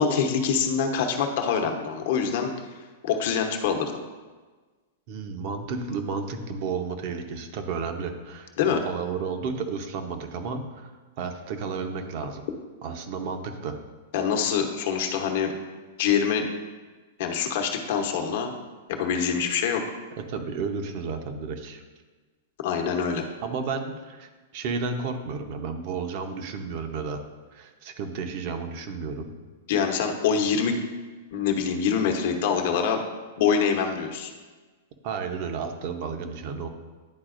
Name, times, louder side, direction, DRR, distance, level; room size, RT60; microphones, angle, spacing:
voice 1, 0.0-2.5 3.0-4.0 8.6-8.8 14.1-15.5 16.0-16.5 17.2-18.5 18.9-19.8 22.6-23.2 29.7-30.8 31.3-33.0 33.4-34.3, left 6 dB, 60° left, 3 dB, 0.9 m, -25 dB
voice 2, 5.1-10.9 11.2-12.4 12.8-13.8 20.2-21.8 23.4-27.2 27.5-29.3 35.0-36.7, right 5 dB, 50° right, 6 dB, 0.8 m, -32 dB
10.5 x 4.0 x 2.6 m, 1.3 s
hypercardioid pair, 130°, 0 cm